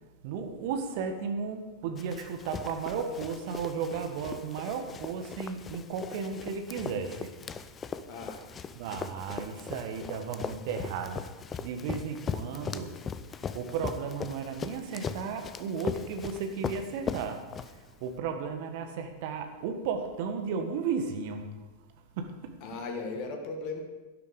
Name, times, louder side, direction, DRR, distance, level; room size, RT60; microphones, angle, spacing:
voice 1, 0.2-7.3 8.7-13.0 13.4-21.5 22.1-22.6, right 6 dB, 50° right, 6 dB, 1.6 m, -34 dB
Run, 2.0-18.1, left 6 dB, 20° left, 0.6 m, -39 dB
voice 2, 8.1-8.4 22.6-23.8, left 3 dB, 45° left, 4 dB, 1.8 m, -37 dB
12.0 x 11.5 x 5.1 m, 1.2 s
figure-of-eight pair, 90°, 0 cm